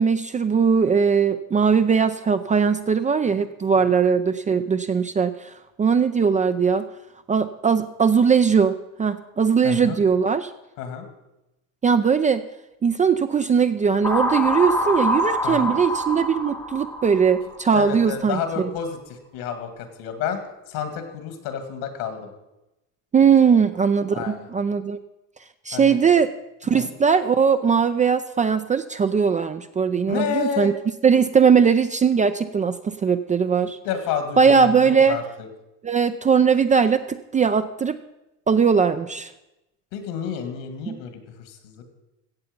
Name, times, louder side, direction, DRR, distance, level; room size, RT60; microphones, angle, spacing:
voice 1, 0.0-5.5 5.8-6.9 7.3-10.5 11.8-12.5 12.8-18.7 23.1-25.0 25.7-26.3 26.6-30.7 31.0-33.8 34.4-35.2 35.8-38.0 38.5-39.3 40.9-41.0, right 6 dB, 20° right, 9 dB, 0.5 m, -20 dB
voice 2, 9.6-10.0 10.8-11.1 15.4-15.7 17.7-19.0 19.3-20.4 20.7-22.3 23.2-23.3 24.1-24.5 25.7-26.0 26.7-26.9 30.1-30.7 33.8-35.2 39.9-41.8, left 7 dB, 70° left, 7 dB, 2.4 m, -30 dB
sound 1, 14.0-17.9, equal, 5° left, 0.9 m, -25 dB
15.0 x 7.9 x 5.3 m, 0.94 s
supercardioid pair, 95°, 40 cm